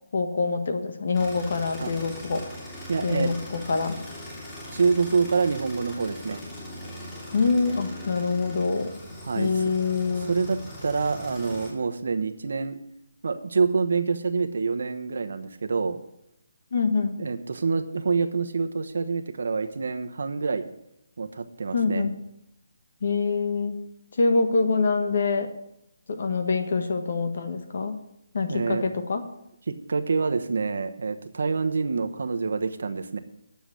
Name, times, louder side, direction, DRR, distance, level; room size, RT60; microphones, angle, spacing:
voice 1, 0.1-2.4 3.0-4.0 7.3-8.9 9.3-10.3 16.7-17.2 21.7-22.2 23.0-23.7 24.2-25.5 26.1-27.9 28.3-29.2, left 4 dB, 55° left, 7 dB, 1.5 m, -25 dB
sound 1, 1.1-11.7, left 1 dB, 15° left, 2.9 m, -40 dB
voice 2, 2.9-3.3 4.7-6.4 9.2-9.5 10.3-12.8 13.2-16.0 17.2-20.7 21.2-22.1 28.5-28.8 29.7-33.2, right 4 dB, 65° right, 8 dB, 1.1 m, -26 dB
10.5 x 6.9 x 7.8 m, 0.82 s
hypercardioid pair, 170°, 0 cm